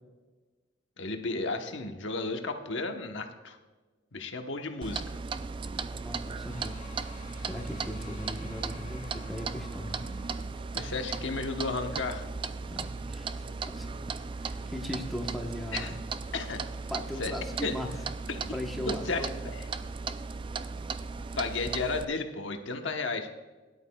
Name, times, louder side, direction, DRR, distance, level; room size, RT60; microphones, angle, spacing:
voice 1, 1.0-3.6 4.1-5.2 10.7-12.2 15.7-15.9 16.3-16.6 17.2-17.3 17.6-17.7 18.3-18.5 18.9-19.7 21.4-23.3, left 3 dB, 70° left, 5 dB, 1.1 m, -33 dB
Clock, 4.8-22.0, right 4 dB, 25° right, 0.3 m, -37 dB
voice 2, 5.9-6.8 7.4-10.0 12.7-13.9 14.4-15.9 16.9-17.9 18.5-19.3, equal, ahead, 1 dB, 1.0 m, -38 dB
sound 1, 6.5-15.6, left 2 dB, 40° left, 1.5 m, -50 dB
17.0 x 11.0 x 2.3 m, 1.3 s
head